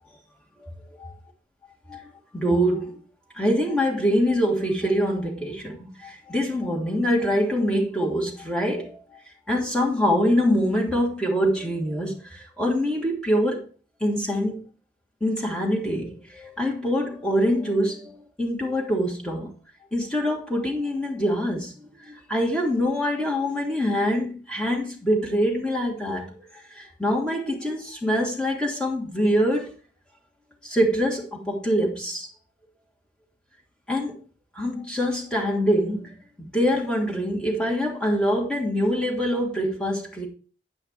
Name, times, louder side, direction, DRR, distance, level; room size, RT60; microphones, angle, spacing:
voice 1, 1.9-2.9 3.3-9.0 9.5-13.6 14.0-14.7 15.2-19.5 19.9-29.7 30.6-32.3 33.9-34.2 34.5-40.3, equal, 5° left, 2.8 m, -24 dB
9.7 x 5.6 x 4.7 m
head